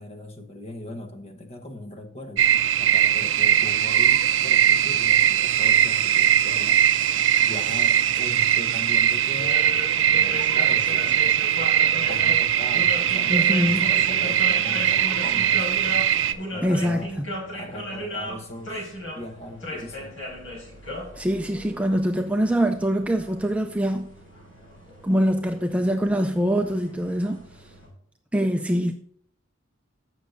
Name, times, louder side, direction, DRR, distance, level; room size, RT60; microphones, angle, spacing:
voice 1, 0.0-2.5 2.8-6.8 7.4-11.4 12.1-15.7 16.5-17.3 17.5-20.1, left 1 dB, 30° left, 1.0 m, -39 dB
sound 1, 2.4-16.3, right 10 dB, 65° right, 0.4 m, -20 dB
sound 2, 9.4-27.9, left 1 dB, 75° left, 4.2 m, -37 dB
voice 2, 13.3-13.9 16.6-17.3 21.1-24.1 25.0-27.7 28.3-28.9, equal, 5° right, 0.4 m, -24 dB
14.5 x 6.3 x 2.6 m
head